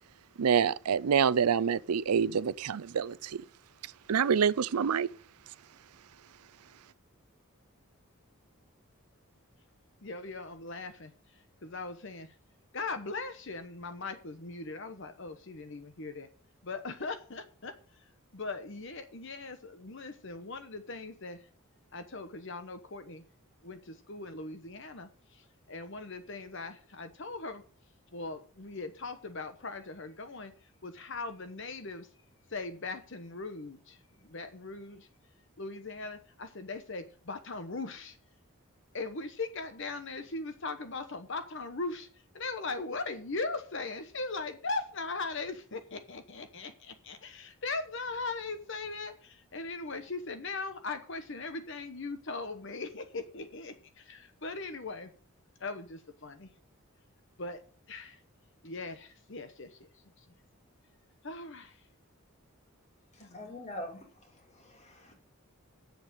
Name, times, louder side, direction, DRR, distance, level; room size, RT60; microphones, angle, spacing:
voice 1, 0.4-3.4 4.1-5.1, right 7 dB, 90° right, 0.5 m, -26 dB
voice 2, 10.0-12.3 12.7-16.3 16.6-21.5 21.9-23.2 23.6-27.6 28.1-32.1 32.5-35.1 35.6-38.2 38.9-55.1 55.6-56.5 57.4-57.6 57.9-58.2 58.6-60.2 61.2-61.9 63.2-63.6, left 3 dB, 55° left, 1.0 m, -40 dB
voice 3, 63.1-65.1, left 1 dB, 30° left, 2.8 m, -44 dB
8.0 x 7.3 x 8.2 m
head